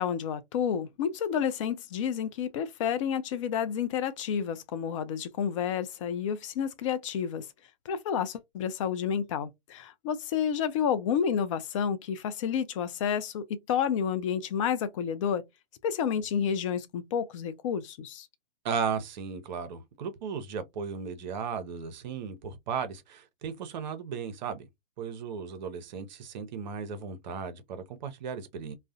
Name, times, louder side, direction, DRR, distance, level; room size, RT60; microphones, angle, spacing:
voice 1, 0.0-7.4 7.9-15.4 15.8-18.3, left 8 dB, 35° left, 0.4 m, -30 dB
voice 2, 18.6-24.7 25.0-28.7, right 6 dB, 50° right, 0.7 m, -35 dB
2.3 x 2.1 x 2.6 m
hypercardioid pair, 125°, 30 cm